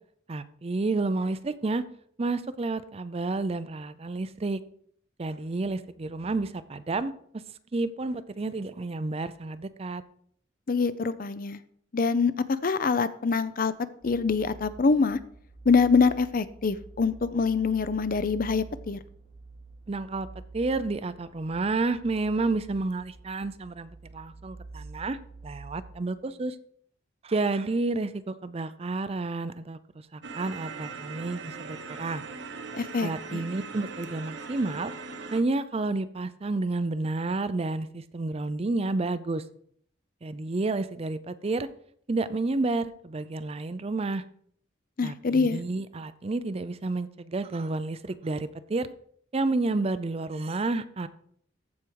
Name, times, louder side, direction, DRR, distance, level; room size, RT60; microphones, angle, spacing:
voice 1, 0.3-1.8 2.2-4.6 5.2-7.1 7.7-10.0 19.9-20.3 20.5-25.2 25.4-26.6 27.2-29.8 30.1-32.2 33.0-34.9 35.3-39.4 40.2-41.7 42.1-44.2 45.0-48.9 49.3-51.1, right 3 dB, 30° right, 13 dB, 0.5 m, -30 dB
voice 2, 10.7-11.6 11.9-13.7 14.0-15.2 15.6-19.0 32.7-33.4 45.0-45.6, left 4 dB, 45° left, 14 dB, 0.5 m, -25 dB
sound 1, 14.0-25.9, right 3 dB, 20° left, 2.8 m, -47 dB
sound 2, 30.2-35.4, right 4 dB, 60° right, 0.9 m, -40 dB
14.5 x 4.9 x 4.6 m, 0.63 s
head